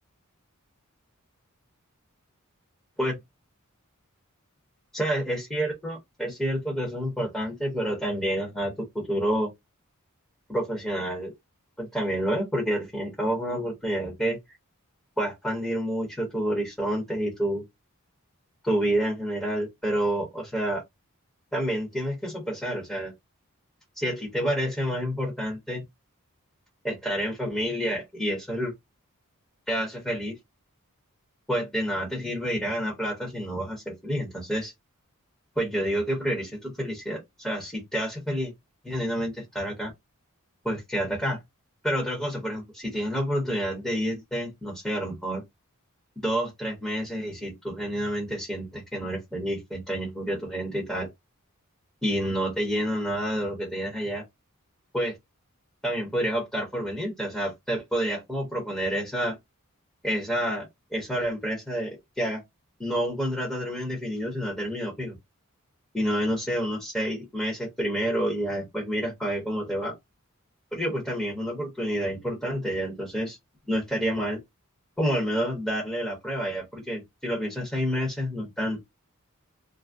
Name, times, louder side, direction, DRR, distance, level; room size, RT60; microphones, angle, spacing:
voice 1, 4.9-9.5 10.5-11.3 11.8-14.4 15.2-17.6 18.6-20.8 21.5-23.1 24.0-25.8 26.8-28.7 29.7-30.4 31.5-34.7 35.6-38.5 38.8-39.9 40.6-41.4 41.8-45.4 46.2-51.1 52.0-54.2 54.9-55.2 55.8-59.4 60.0-62.4 62.8-65.2 65.9-69.9 70.7-73.4 73.7-74.4 75.0-78.8, equal, 5° left, 0.9 m, -29 dB
2.5 x 2.1 x 3.3 m
head